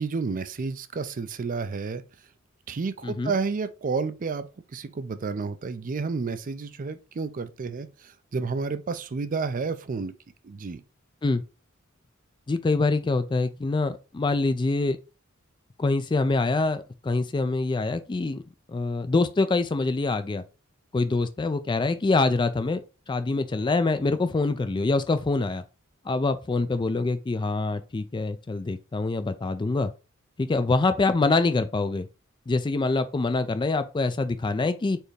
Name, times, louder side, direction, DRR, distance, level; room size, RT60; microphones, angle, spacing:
voice 1, 0.0-2.0 2.7-10.1 10.4-10.8, right 4 dB, 40° right, 0.4 m, -31 dB
voice 2, 12.5-15.0 15.8-18.4 18.7-20.4 20.9-22.8 23.1-25.6 26.1-29.9 30.4-32.1 32.5-35.0, left 3 dB, 20° left, 0.3 m, -25 dB
4.4 x 3.4 x 3.2 m
head